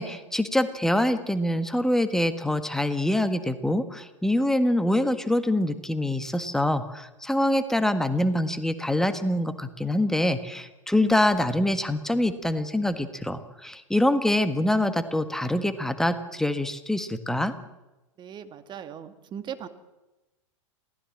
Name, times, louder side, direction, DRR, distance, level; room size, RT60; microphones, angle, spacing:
voice 1, 0.0-17.5, left 1 dB, 5° left, 10 dB, 1.6 m, -25 dB
voice 2, 18.2-19.7, right 9 dB, 25° right, 10 dB, 1.9 m, -39 dB
27.5 x 18.5 x 7.5 m, 1.1 s
figure-of-eight pair, 90°, 17 cm